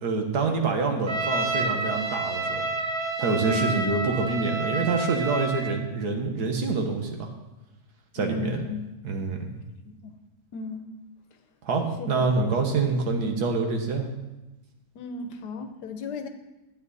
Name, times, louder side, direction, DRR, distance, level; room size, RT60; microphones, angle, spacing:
voice 1, 0.0-2.7 3.2-7.3 8.1-8.6 9.0-9.5 11.6-14.1, right 4 dB, 75° right, 3 dB, 1.9 m, -26 dB
Trumpet, 1.1-5.8, right 2 dB, 45° right, 1.1 m, -29 dB
voice 2, 3.4-3.8 8.2-8.8 9.8-10.1 10.5-10.8 12.0-12.5 14.9-16.3, left 3 dB, 85° left, 8 dB, 1.5 m, -35 dB
12.5 x 8.9 x 4.1 m, 1.0 s
omnidirectional pair, 1.7 m